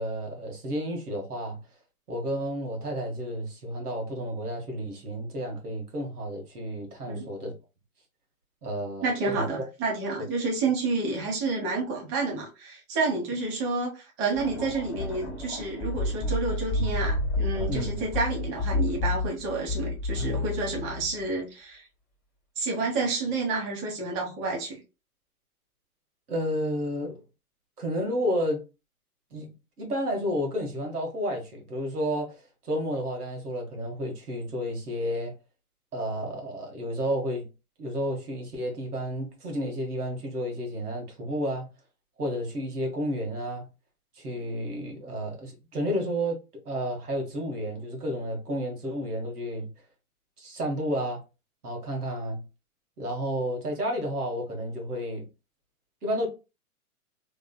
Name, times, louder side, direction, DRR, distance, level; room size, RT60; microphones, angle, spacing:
voice 1, 0.0-1.6 2.1-7.5 8.6-9.4 17.7-18.0 26.3-27.2 27.8-28.6 29.3-32.3 32.6-35.4 35.9-37.5 37.8-41.7 42.2-43.7 44.2-46.4 46.6-49.7 50.4-51.2 51.6-52.4 53.0-55.3 56.0-56.3, equal, 80° right, 1.4 m, -31 dB
voice 2, 9.0-21.9 22.6-24.8, right 3 dB, 25° right, 1.3 m, -29 dB
sound 1, 14.3-21.2, left 2 dB, ahead, 1.7 m, -30 dB
3.7 x 3.1 x 2.2 m
figure-of-eight pair, 120°, 44 cm